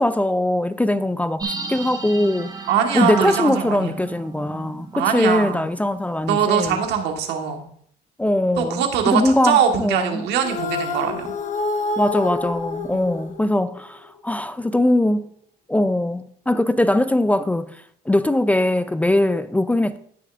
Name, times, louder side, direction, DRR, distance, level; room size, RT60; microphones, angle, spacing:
voice 1, 0.0-2.5 2.9-6.8 8.2-10.2 12.0-15.3 15.7-17.7 18.1-20.0, left 1 dB, 10° left, 0.4 m, -21 dB
sound 1, 1.4-5.8 6.1-6.2, right 4 dB, 25° right, 2.1 m, -33 dB
voice 2, 2.7-4.0 4.9-5.6 6.3-7.6 8.6-11.3, right 8 dB, 85° right, 1.5 m, -22 dB
sound 2, 10.4-13.8, left 3 dB, 45° left, 1.1 m, -27 dB
16.5 x 6.4 x 2.5 m
cardioid pair, 110°, 17 cm